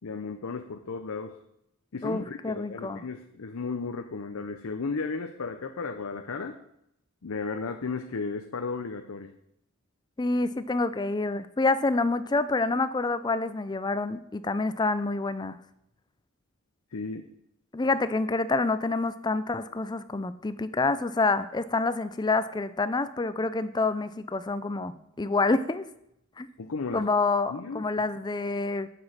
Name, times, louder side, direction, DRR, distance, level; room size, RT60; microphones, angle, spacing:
voice 1, 0.0-1.4 1.9-6.6 7.2-9.3 16.9-17.3 26.6-27.1 27.5-27.8, left 4 dB, 80° left, 6 dB, 0.6 m, -34 dB
voice 2, 2.0-3.0 10.2-15.6 17.7-24.9 25.2-25.8 26.4-26.5 26.9-28.9, left 3 dB, 20° left, 13 dB, 0.4 m, -27 dB
7.7 x 6.1 x 7.4 m, 0.79 s
head